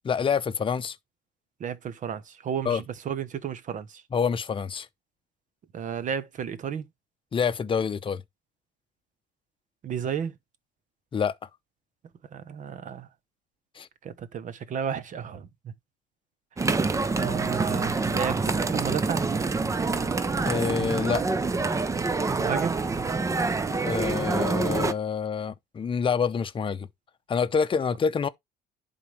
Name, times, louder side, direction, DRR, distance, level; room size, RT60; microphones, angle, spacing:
voice 1, 0.0-1.0 2.6-2.8 4.1-4.9 7.3-8.2 11.1-11.3 13.8-13.9 20.4-21.2 23.7-26.9 27.3-28.3, left 6 dB, 30° left, 0.7 m, -27 dB
voice 2, 1.6-4.0 5.7-6.9 9.8-10.3 12.3-13.1 14.0-15.7 16.6-19.3 22.4-22.8, right 8 dB, 50° right, 1.0 m, -33 dB
sound 1, 16.6-24.9, right 3 dB, 20° right, 0.6 m, -26 dB
11.0 x 4.0 x 3.2 m
cardioid pair, 110°, 17 cm